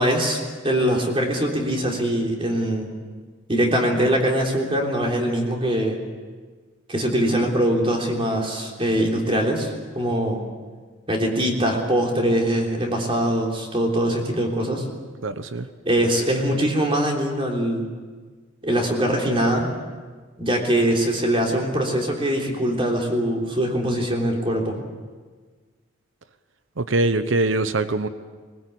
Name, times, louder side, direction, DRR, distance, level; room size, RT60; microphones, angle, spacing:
voice 1, 0.0-2.9 3.5-6.0 6.9-10.4 11.1-14.9 15.9-17.8 18.6-19.7 20.4-24.8, right 1 dB, 25° right, 0 dB, 3.5 m, -22 dB
voice 2, 15.2-15.7 26.8-28.1, right 2 dB, 75° right, 11 dB, 0.9 m, -23 dB
20.5 x 20.5 x 8.5 m, 1.5 s
head